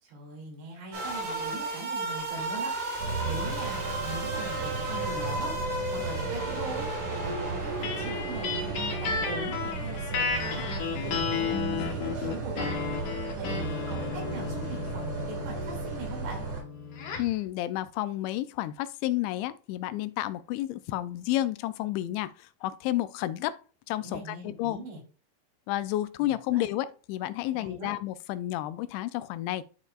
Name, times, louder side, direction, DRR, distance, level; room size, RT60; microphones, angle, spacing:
voice 1, 0.0-12.7 13.3-16.4 24.0-25.0 26.2-26.6 27.5-27.9, right 2 dB, 70° right, 4.7 m, -41 dB
sound 1, 0.9-9.7, right 2 dB, 90° right, 5.7 m, -34 dB
sound 2, 3.0-16.6, right 4 dB, 45° right, 3.3 m, -35 dB
sound 3, 7.8-17.4, left 5 dB, 65° left, 2.1 m, -33 dB
voice 2, 17.2-23.6 23.9-24.8 25.7-29.6, left 15 dB, 85° left, 2.9 m, -31 dB
12.0 x 4.5 x 2.4 m
omnidirectional pair, 5.1 m